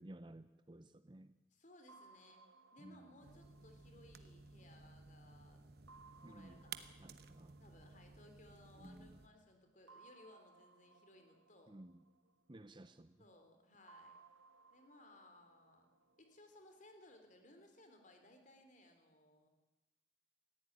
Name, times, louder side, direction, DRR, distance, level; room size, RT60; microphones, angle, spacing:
voice 1, 0.0-1.3 2.8-3.2 6.2-6.7 7.0-7.6 8.8-9.2 11.7-12.1 12.5-13.2, right 1 dB, 25° right, 12 dB, 0.6 m, -56 dB
voice 2, 1.5-2.4 2.7-5.6 6.2-6.9 7.6-11.8 13.2-14.2 14.7-15.9 16.2-19.5, left 1 dB, 40° left, 5 dB, 3.3 m, -63 dB
sound 1, 1.9-5.2 5.9-8.8 9.9-13.0 13.9-17.0, right 4 dB, 80° right, 1.0 m, -65 dB
sound 2, 3.2-9.3, right 6 dB, 50° right, 1.1 m, -56 dB
18.5 x 15.5 x 10.0 m, 1.1 s
head